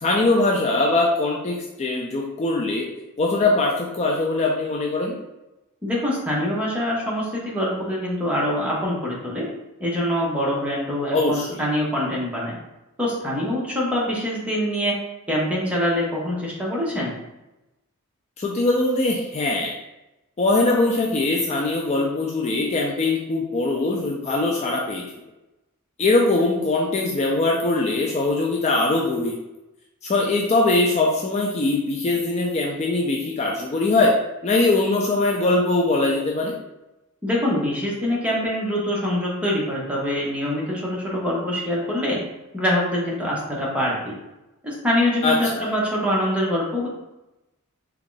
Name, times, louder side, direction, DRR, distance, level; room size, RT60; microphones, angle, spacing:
voice 1, 0.0-2.9 3.2-5.2 11.1-11.6 18.4-19.7 20.4-25.0 26.0-29.3 30.0-34.1 34.4-36.5 45.2-45.7, left 2 dB, 30° left, -1 dB, 0.4 m, -21 dB
voice 2, 5.8-9.5 9.8-12.6 13.0-15.0 15.3-17.1 37.2-42.2 42.5-44.1 44.6-46.9, left 1 dB, 5° right, -5 dB, 0.9 m, -24 dB
3.6 x 2.3 x 3.8 m, 0.96 s
head